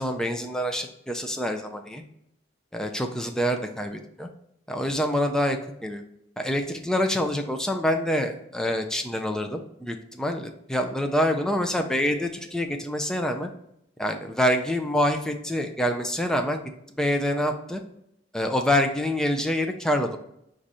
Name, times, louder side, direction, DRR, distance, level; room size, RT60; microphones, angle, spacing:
voice 1, 0.0-2.0 2.7-4.3 4.7-6.0 6.4-13.5 14.0-16.6 17.0-17.8 18.3-20.2, equal, 5° left, 4 dB, 0.4 m, -26 dB
4.8 x 2.5 x 4.1 m, 0.77 s
head